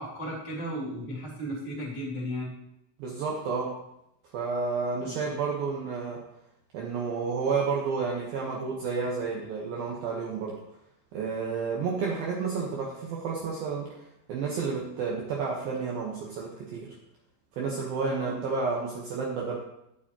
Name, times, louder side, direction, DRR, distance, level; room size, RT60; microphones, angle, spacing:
voice 1, 0.0-2.5 5.0-5.2 18.2-18.4, equal, 10° left, -4 dB, 2.0 m, -35 dB
voice 2, 3.0-3.7 4.3-6.2 6.7-10.6 11.1-13.9 14.3-16.9 17.6-19.6, right 5 dB, 65° right, -3 dB, 2.6 m, -30 dB
11.5 x 9.2 x 3.0 m, 0.82 s
omnidirectional pair, 5.2 m